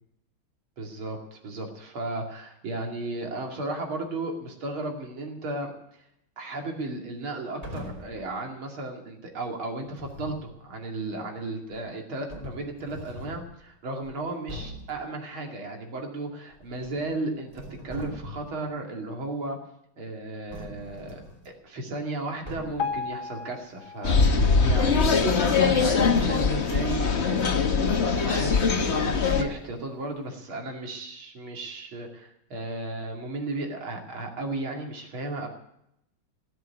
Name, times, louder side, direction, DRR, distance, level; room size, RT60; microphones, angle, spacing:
voice 1, 0.8-5.7 6.4-17.5 17.8-19.6 20.0-35.5, right 2 dB, 80° right, 2 dB, 3.4 m, -35 dB
sound 1, 7.6-8.2 9.9-10.5 11.7-11.8 12.3-13.5 14.0-14.1 14.5-15.0 16.5-17.2 17.5-18.6 20.5-21.5 22.5-23.0, equal, 15° right, 3.1 m, -41 dB
Piano, 22.8-25.9 26.4-26.6 26.9-27.0 27.7-27.8 28.3-28.4, left 5 dB, 80° left, 2.4 m, -36 dB
sound 2, 24.0-29.4, left 5 dB, 40° left, 1.3 m, -22 dB
16.5 x 7.9 x 9.6 m, 0.79 s
omnidirectional pair, 2.2 m